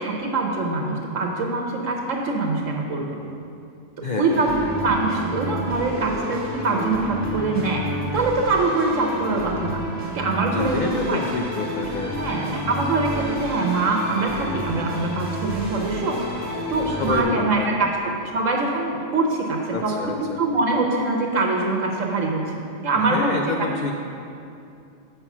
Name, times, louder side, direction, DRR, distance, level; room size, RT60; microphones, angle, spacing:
voice 1, 0.0-3.2 4.0-4.5 4.8-7.8 8.1-9.8 10.1-11.2 12.1-16.4 16.7-23.4, right 3 dB, 70° right, 0 dB, 1.1 m, -24 dB
voice 2, 4.0-4.5 10.5-12.2 16.9-17.9 19.7-20.4 23.0-24.0, left 3 dB, 85° left, 2 dB, 0.4 m, -28 dB
sound 1, 4.3-17.2, equal, 15° right, 1.3 m, -30 dB
7.5 x 5.7 x 5.9 m, 2.6 s
omnidirectional pair, 1.4 m